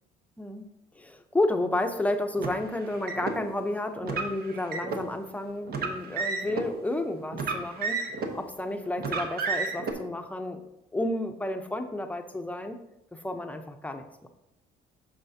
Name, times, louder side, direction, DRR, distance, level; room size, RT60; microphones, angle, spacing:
voice 1, 0.4-0.7 1.0-10.6 10.9-12.8 13.1-14.3, left 1 dB, 10° left, 6 dB, 0.6 m, -31 dB
Car, 2.4-3.4 4.0-5.0 5.7-6.7 7.3-8.4 9.0-9.9, right 4 dB, 65° right, 1.1 m, -31 dB
9.0 x 6.3 x 2.8 m, 0.88 s
cardioid pair, 110°, 17 cm